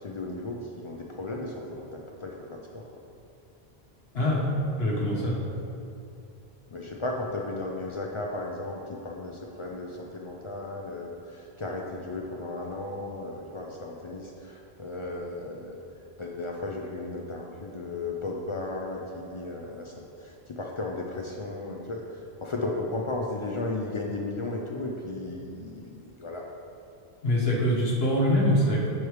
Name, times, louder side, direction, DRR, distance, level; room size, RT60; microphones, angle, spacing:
voice 1, 0.0-2.8 6.7-15.8 16.2-26.5, left 2 dB, 50° left, -1 dB, 0.4 m, -35 dB
voice 2, 4.1-4.4 4.8-5.4 27.2-28.9, left 1 dB, 75° left, -3 dB, 1.2 m, -24 dB
6.7 x 3.2 x 4.6 m, 2.6 s
omnidirectional pair, 1.1 m